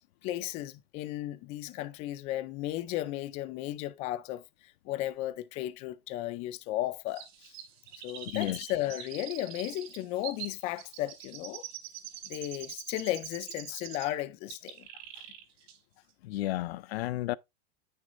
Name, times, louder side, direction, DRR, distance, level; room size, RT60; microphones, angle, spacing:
voice 1, 0.2-7.6 8.0-11.6 12.2-14.9, left 14 dB, 20° left, 0.4 m, -35 dB
Chirp tweet, 7.2-14.2 14.5-15.4 15.7-15.8, right 9 dB, 50° right, 2.6 m, -44 dB
voice 2, 8.3-8.7 16.2-17.4, left 16 dB, 90° left, 0.5 m, -32 dB
9.4 x 6.2 x 2.5 m
supercardioid pair, 165°, 30 cm